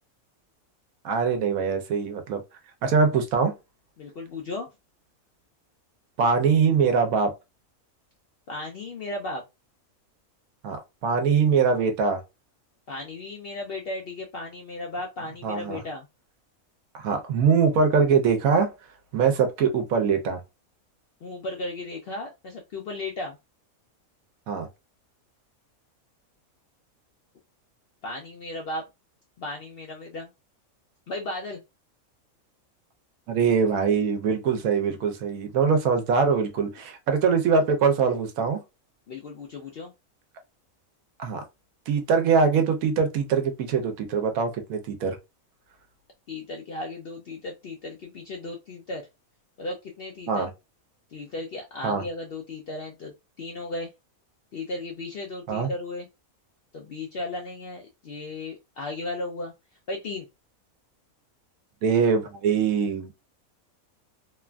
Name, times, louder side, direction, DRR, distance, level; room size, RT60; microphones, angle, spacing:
voice 1, 1.0-2.4 2.8-3.5 6.2-7.3 10.6-10.8 11.0-12.2 15.4-15.8 16.9-18.7 19.1-20.4 24.5-24.7 33.3-38.6 41.2-41.4 41.9-45.2 50.3-50.5 51.8-52.0 55.5-55.7 61.8-63.1, right 5 dB, 80° right, 1.1 m, -23 dB
voice 2, 4.0-4.7 8.5-9.4 12.9-16.1 21.2-23.4 28.0-28.9 29.4-30.3 31.1-31.6 39.1-39.9 46.3-49.1 49.6-50.5 51.1-53.9 54.5-56.1 56.7-59.5 59.9-60.3, left 2 dB, 70° left, 0.5 m, -35 dB
3.0 x 2.4 x 2.2 m
omnidirectional pair, 1.5 m